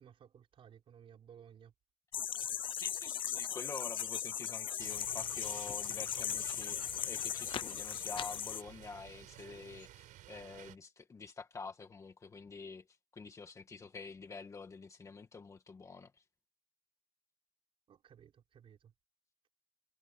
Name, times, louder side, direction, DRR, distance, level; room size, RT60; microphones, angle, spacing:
voice 1, 0.0-1.7 17.9-18.9, right 8 dB, 40° right, 4.8 m, -58 dB
sound 1, 2.1-8.6, left 9 dB, 40° left, 0.7 m, -38 dB
voice 2, 2.8-12.8 13.1-16.1, left 4 dB, 20° left, 1.7 m, -48 dB
sound 2, 4.8-10.8, right 14 dB, 75° right, 5.5 m, -54 dB
cardioid pair, 175°, 14 cm